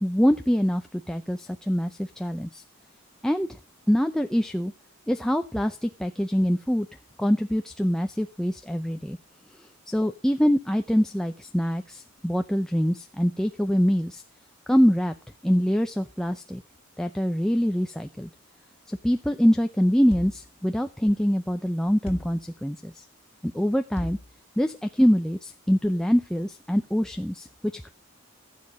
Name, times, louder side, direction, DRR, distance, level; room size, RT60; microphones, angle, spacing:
voice 1, 0.0-2.6 3.2-3.6 3.9-4.7 5.1-6.9 7.2-9.2 9.6-14.2 14.7-15.1 15.4-16.6 17.0-18.3 18.9-23.0 23.4-24.2 24.6-27.5 27.7-27.9, equal, 5° left, 6 dB, 0.5 m, -24 dB
sound 1, 20.1-20.5 22.1-22.5 24.0-24.3, left 1 dB, 30° left, 1.6 m, -37 dB
15.5 x 7.4 x 4.8 m, 0.30 s
head